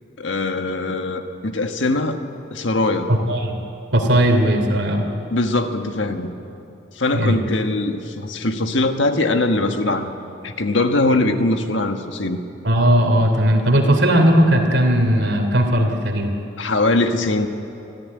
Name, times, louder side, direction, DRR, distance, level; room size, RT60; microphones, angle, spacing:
voice 1, 0.2-2.2 2.5-3.1 5.3-6.3 6.9-10.1 10.4-12.4 16.6-17.5, left 2 dB, 80° left, 6 dB, 1.5 m, -21 dB
voice 2, 3.1-3.6 3.9-5.0 7.1-7.4 12.6-16.3, equal, 65° right, 3 dB, 3.0 m, -17 dB
24.5 x 15.0 x 9.6 m, 2.9 s
head